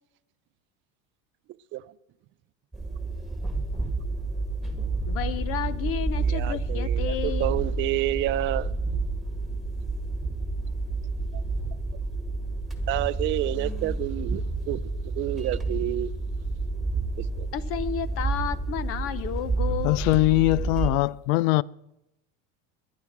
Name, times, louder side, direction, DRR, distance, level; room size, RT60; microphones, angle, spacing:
sound 1, 2.7-20.9, right 3 dB, ahead, 1.8 m, -29 dB
voice 1, 5.1-7.6 17.5-20.0, left 10 dB, 40° left, 0.7 m, -32 dB
voice 2, 6.3-8.7 12.9-16.1 17.2-17.5, right 16 dB, 35° right, 0.5 m, -29 dB
voice 3, 19.8-21.6, left 20 dB, 80° left, 0.6 m, -21 dB
19.5 x 11.5 x 5.9 m
cardioid pair, 160°, 37 cm